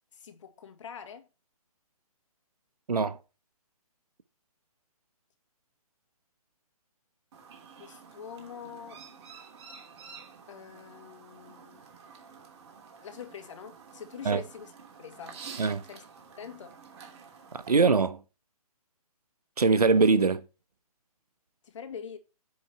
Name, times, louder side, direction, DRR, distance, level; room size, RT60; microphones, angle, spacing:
voice 1, 0.1-1.3 7.8-9.0 10.5-11.8 13.0-14.7 15.0-15.4 15.9-16.1 16.4-16.8 21.6-22.2, left 7 dB, 55° left, 2.1 m, -44 dB
Chirp tweet, 7.3-17.7, right 6 dB, 45° right, 2.7 m, -49 dB
voice 2, 17.5-18.2 19.6-20.4, right 4 dB, 90° right, 1.1 m, -22 dB
10.0 x 4.3 x 5.8 m
hypercardioid pair, 145°, 19 cm